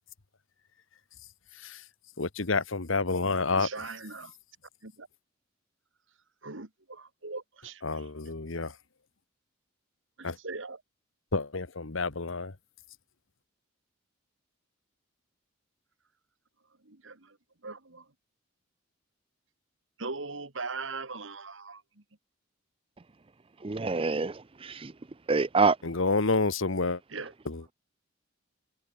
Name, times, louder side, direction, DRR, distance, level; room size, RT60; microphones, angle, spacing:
voice 1, 1.5-1.8 2.2-3.7 7.8-8.8 10.2-10.4 11.3-12.5 25.8-27.0 27.4-27.6, left 3 dB, 75° left, 1.4 m, -29 dB
voice 2, 3.5-4.4 4.8-5.1 6.4-8.0 10.2-10.8 16.8-17.4 17.6-18.1 20.0-22.0 27.1-27.3, right 4 dB, 65° right, 2.3 m, -40 dB
voice 3, 23.6-24.9 25.3-25.8, right 4 dB, 25° right, 0.6 m, -26 dB
head